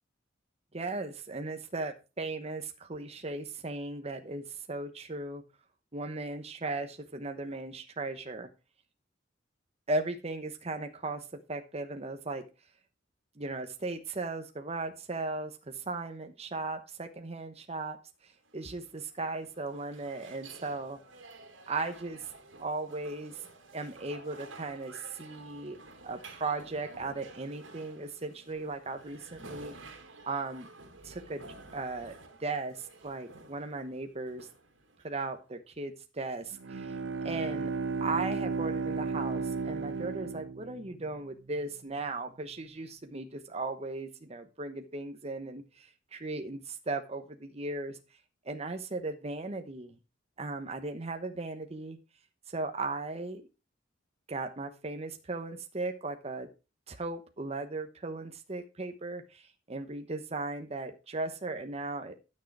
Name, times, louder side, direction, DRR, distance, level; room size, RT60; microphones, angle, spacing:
voice 1, 0.7-5.4 5.9-8.5 9.9-12.4 13.4-18.0 18.2-21.0 21.7-22.3 22.6-23.4 23.7-25.8 26.0-29.7 30.3-30.7 31.0-31.4 31.7-34.5 35.0-37.0 37.2-37.7 38.0-48.0 48.4-50.0 50.4-52.0 52.5-53.5 54.3-56.5 56.9-62.1, right 3 dB, 35° right, 6 dB, 1.0 m, -37 dB
sound 1, 18.4-35.5, right 3 dB, 85° right, 2.5 m, -52 dB
Bowed string instrument, 36.5-41.2, right 4 dB, 70° right, 0.7 m, -34 dB
12.5 x 6.5 x 4.7 m, 0.30 s
head